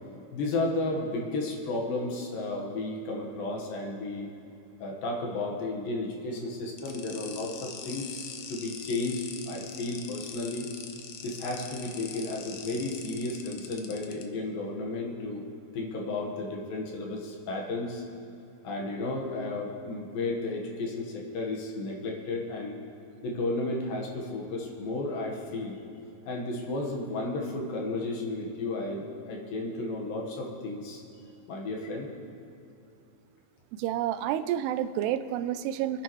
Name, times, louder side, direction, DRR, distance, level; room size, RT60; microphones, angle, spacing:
voice 1, 0.3-4.3 4.8-10.7 11.2-15.5 15.7-18.0 18.6-22.8 23.2-25.8 26.3-31.0 31.5-32.1, left 2 dB, 65° left, 0 dB, 2.9 m, -33 dB
sound 1, 6.8-14.2, left 7 dB, 90° left, 1.7 m, -42 dB
voice 2, 33.7-36.0, right 11 dB, 85° right, 12 dB, 2.6 m, -29 dB
25.0 x 10.5 x 3.1 m, 2.8 s
omnidirectional pair, 4.7 m